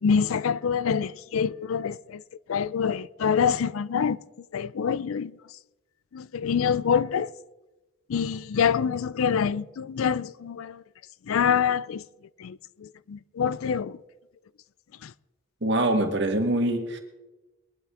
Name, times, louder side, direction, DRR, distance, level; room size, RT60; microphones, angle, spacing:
voice 1, 0.0-2.2 2.5-4.2 4.5-5.4 6.1-7.3 8.1-10.8 11.3-12.1 12.4-14.0 15.0-15.1, left 7 dB, 80° left, 0.4 m, -26 dB
voice 2, 15.6-17.0, right 1 dB, 55° right, 1.7 m, -24 dB
21.5 x 11.5 x 3.7 m
head